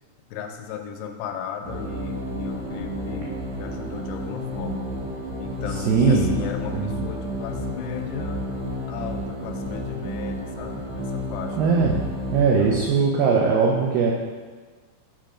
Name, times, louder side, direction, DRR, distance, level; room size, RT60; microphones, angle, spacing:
voice 1, 0.3-4.9 5.4-8.6 8.9-11.6 12.6-12.8, left 7 dB, 85° left, 5 dB, 2.5 m, -35 dB
sound 1, 1.6-12.9, equal, 65° right, 2.2 m, -31 dB
voice 2, 5.7-6.3 6.7-6.9 11.6-12.0 12.3-14.1, right 5 dB, 80° right, -2 dB, 2.1 m, -20 dB
7.5 x 3.8 x 4.9 m, 1.4 s
omnidirectional pair, 4.6 m